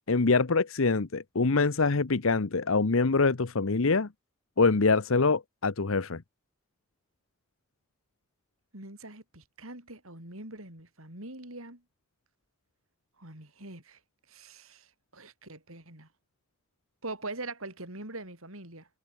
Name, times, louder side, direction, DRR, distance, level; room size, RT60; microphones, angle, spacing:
voice 1, 0.1-4.1 4.6-6.2, left 4 dB, 70° left, 0.9 m, -24 dB
voice 2, 8.7-11.8 13.2-14.0 14.3-16.1 17.0-18.9, right 2 dB, 80° right, 7.3 m, -43 dB
head